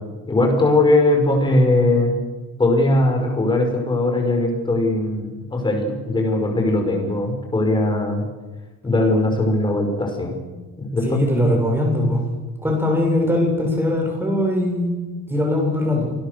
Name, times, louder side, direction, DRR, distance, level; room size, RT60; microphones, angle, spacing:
voice 1, 0.3-2.1 2.6-8.2 8.8-10.3 10.8-11.2, left 2 dB, 15° left, 3 dB, 5.5 m, -19 dB
voice 2, 11.0-12.2 12.6-14.9 15.3-16.1, left 1 dB, 5° right, 1 dB, 7.3 m, -20 dB
27.5 x 21.0 x 6.8 m, 1.2 s
cardioid pair, 165°, 31 cm